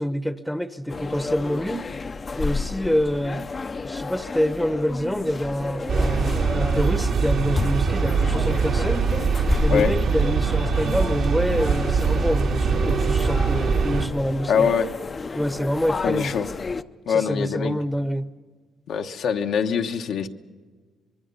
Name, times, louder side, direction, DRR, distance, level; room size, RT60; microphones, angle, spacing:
voice 1, 0.0-1.9 2.3-3.5 3.8-9.1 9.6-14.7 15.3-16.3 17.1-18.3, equal, 5° left, 0.9 m, -26 dB
sound 1, 0.9-16.8, left 4 dB, 35° left, 0.7 m, -31 dB
sound 2, 5.9-14.1, right 5 dB, 70° right, 2.1 m, -23 dB
voice 2, 14.5-14.9 16.0-16.5 17.1-17.8 18.9-20.3, left 7 dB, 75° left, 1.1 m, -23 dB
25.0 x 22.0 x 5.6 m
cardioid pair, 90°, 0 cm